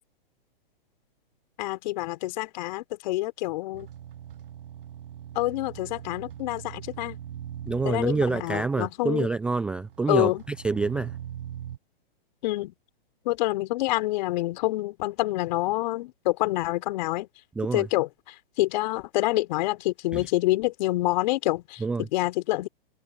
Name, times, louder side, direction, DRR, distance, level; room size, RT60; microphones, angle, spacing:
voice 1, 1.6-3.9 5.3-7.2 7.8-9.3 10.1-10.4 12.4-12.7 13.2-17.3 17.7-22.7, left 18 dB, 50° left, 3.9 m, -27 dB
sound 1, 3.7-11.8, right 10 dB, 65° right, 1.6 m, -41 dB
voice 2, 7.6-10.3 10.6-11.2 17.6-17.9 20.1-20.3 21.8-22.1, right 4 dB, 5° right, 0.3 m, -27 dB
hypercardioid pair, 125°, 29 cm